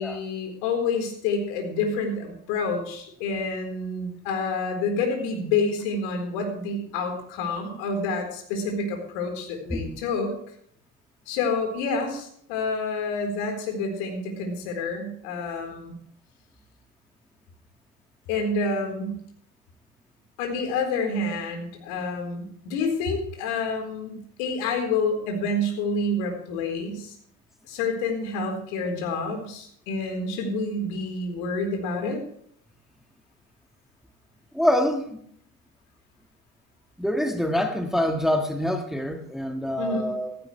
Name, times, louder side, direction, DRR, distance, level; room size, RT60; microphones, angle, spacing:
voice 1, 0.0-10.3 11.3-15.9 18.3-19.1 20.4-27.2 27.7-32.2 39.8-40.1, left 3 dB, 65° left, 3 dB, 4.3 m, -28 dB
voice 2, 34.5-35.2 37.0-40.4, left 1 dB, ahead, 5 dB, 1.7 m, -25 dB
16.0 x 14.5 x 3.3 m, 0.66 s
hypercardioid pair, 70°, 46 cm